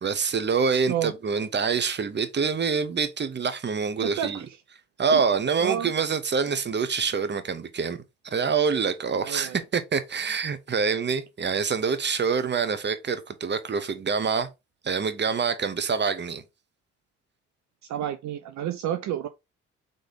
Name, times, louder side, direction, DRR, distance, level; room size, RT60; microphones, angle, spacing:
voice 1, 0.0-4.4 5.0-8.0 8.2-14.5 14.8-16.4, right 5 dB, 35° right, 0.9 m, -26 dB
voice 2, 4.0-4.5 5.1-5.2 5.6-5.9 9.2-9.6 17.9-19.3, right 10 dB, 60° right, 0.5 m, -30 dB
3.9 x 3.3 x 3.8 m
hypercardioid pair, 50°, 31 cm